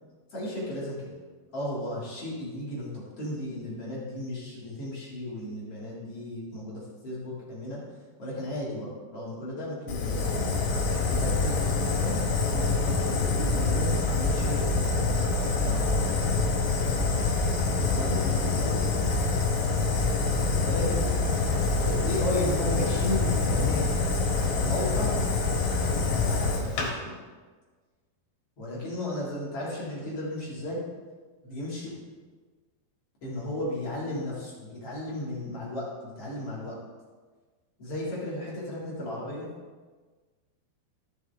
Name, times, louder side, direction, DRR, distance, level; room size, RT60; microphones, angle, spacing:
voice 1, 0.3-1.1 1.5-7.8 8.2-10.5 10.9-12.2 12.5-16.2 17.8-19.0 20.6-21.0 21.8-23.9 24.5-25.2 26.2-27.2 28.6-30.8 31.4-31.9 33.2-36.8 37.8-39.5, left 1 dB, 45° left, -7 dB, 2.6 m, -34 dB
Fire, 9.9-26.9, left 3 dB, 75° left, 3.5 m, -26 dB
14.0 x 6.3 x 3.4 m, 1.4 s
omnidirectional pair, 4.8 m